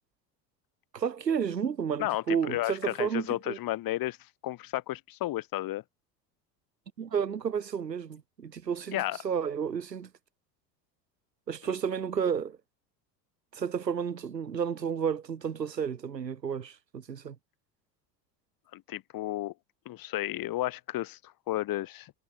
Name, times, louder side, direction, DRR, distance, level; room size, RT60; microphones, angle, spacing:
voice 1, 0.9-3.6 7.0-10.1 11.5-12.6 13.5-17.4, right 7 dB, 90° right, 0.9 m, -31 dB
voice 2, 2.0-4.2 4.4-5.8 8.9-9.2 11.7-11.8 18.7-19.5 19.9-22.1, left 15 dB, 45° left, 3.5 m, -33 dB
figure-of-eight pair, 70°, 48 cm